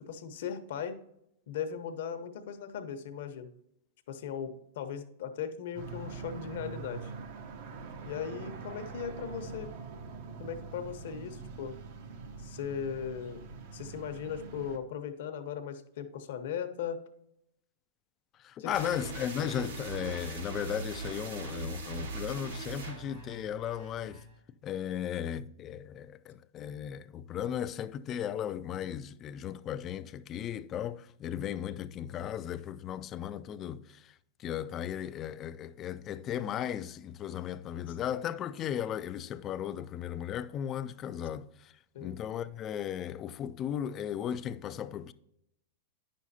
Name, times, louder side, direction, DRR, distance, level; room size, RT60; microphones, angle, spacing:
voice 1, 0.1-1.0 1.5-3.5 4.1-7.1 8.0-9.7 10.4-11.8 12.4-13.4 13.7-17.0 18.6-18.7 37.9-38.0 41.9-42.2, left 7 dB, 65° left, 0.9 m, -38 dB
sound 1, 5.7-14.8, right 5 dB, 55° right, 0.9 m, -44 dB
voice 2, 18.4-24.2 24.6-34.1 34.4-41.7 42.0-45.1, left 10 dB, 30° left, 0.3 m, -36 dB
sound 2, 18.7-24.4, right 3 dB, 80° right, 2.8 m, -40 dB
9.4 x 6.2 x 2.8 m
hypercardioid pair, 135°, 0 cm